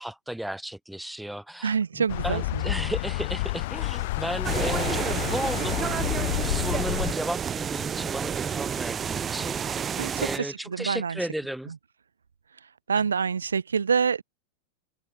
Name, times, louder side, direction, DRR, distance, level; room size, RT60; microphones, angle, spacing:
voice 1, 0.0-9.8 10.2-11.7, right 1 dB, ahead, 3.6 m, -34 dB
voice 2, 1.6-2.7 10.0-11.2 12.9-14.2, right 6 dB, 70° right, 1.6 m, -26 dB
sound 1, 2.1-7.1, left 19 dB, 50° left, 0.7 m, -29 dB
sound 2, 4.4-10.4, right 7 dB, 20° right, 1.3 m, -30 dB
figure-of-eight pair, 90°, 0 cm